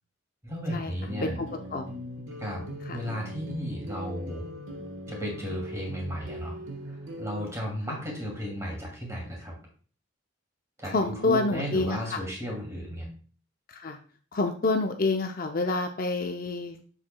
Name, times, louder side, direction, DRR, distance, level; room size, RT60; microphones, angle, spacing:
voice 1, 0.4-1.4 2.4-2.6 2.9-4.5 5.1-6.5 6.8-9.5 10.8-13.1, equal, 15° right, -1 dB, 2.4 m, -34 dB
sound 1, 1.1-7.5, equal, 85° right, 1.3 m, -40 dB
voice 2, 10.9-12.2 13.7-14.0 14.3-16.8, left 3 dB, 45° left, 5 dB, 0.5 m, -27 dB
7.3 x 6.5 x 2.2 m, 0.41 s
head